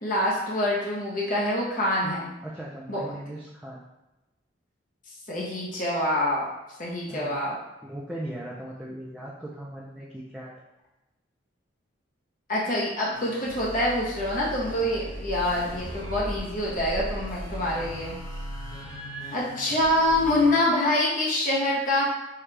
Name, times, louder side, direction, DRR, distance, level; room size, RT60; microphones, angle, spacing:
voice 1, 0.0-2.3 2.9-3.0 5.3-6.5 6.8-7.5 12.5-18.1 19.3-22.0, left 1 dB, 45° left, -5 dB, 0.8 m, -25 dB
voice 2, 2.4-3.9 7.1-7.3 7.8-10.5, right 1 dB, 5° right, -6 dB, 0.4 m, -38 dB
sound 1, 13.1-20.5, equal, 20° left, 1.1 m, -37 dB
5.7 x 2.3 x 3.3 m, 1.0 s
head